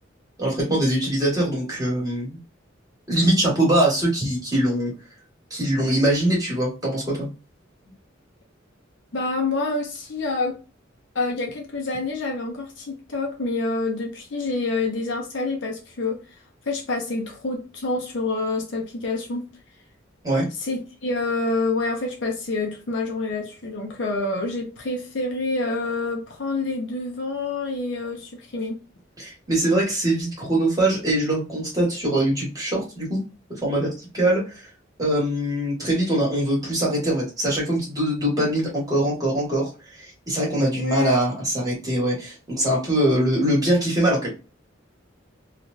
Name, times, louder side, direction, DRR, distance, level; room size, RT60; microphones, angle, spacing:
voice 1, 0.4-2.4 3.1-4.9 5.5-7.3 20.2-20.5 29.2-33.2 33.6-34.6 35.0-39.7 40.0-44.3, right 1 dB, 20° right, 1.6 m, -22 dB
voice 2, 9.1-10.6 11.1-16.2 16.7-19.5 20.6-28.8 40.8-41.2, left 3 dB, 65° left, 0.7 m, -27 dB
3.1 x 2.4 x 2.5 m
head